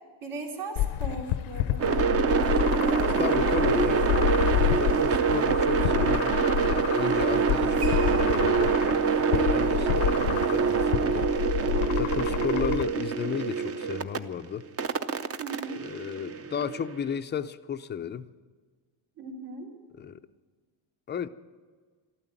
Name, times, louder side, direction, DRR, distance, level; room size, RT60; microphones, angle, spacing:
voice 1, 0.2-3.3 15.4-15.8 19.2-19.7, right 3 dB, 65° right, 0 dB, 3.4 m, -39 dB
sound 1, 0.8-12.8, left 14 dB, 80° left, 0.7 m, -29 dB
sound 2, 1.8-14.2 14.8-16.9, right 6 dB, 30° right, 0.7 m, -25 dB
sound 3, 2.3-10.9, right 4 dB, 85° right, 3.5 m, -47 dB
voice 2, 3.1-4.1 4.8-8.7 9.3-11.3 12.0-14.6 15.8-18.3 20.0-20.2 21.1-21.3, left 8 dB, 25° left, 12 dB, 0.4 m, -33 dB
13.0 x 12.5 x 8.9 m, 1.5 s
cardioid pair, 140°, 48 cm